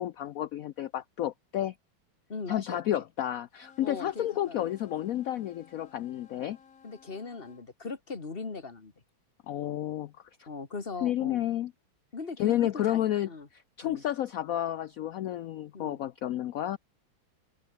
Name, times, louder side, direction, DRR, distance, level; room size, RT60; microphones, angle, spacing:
voice 1, 0.0-1.8 2.5-6.6 9.5-10.1 10.4-10.5 11.0-11.7 12.4-16.8, left 12 dB, 80° left, 0.7 m, -31 dB
voice 2, 2.3-3.0 3.8-4.7 6.8-8.9 10.5-11.4 12.1-13.0 13.3-13.5 13.8-14.0 15.7-16.0, left 4 dB, 30° left, 2.2 m, -39 dB
sound 1, 3.5-7.6, left 6 dB, 45° left, 1.9 m, -57 dB
open air
omnidirectional pair, 2.2 m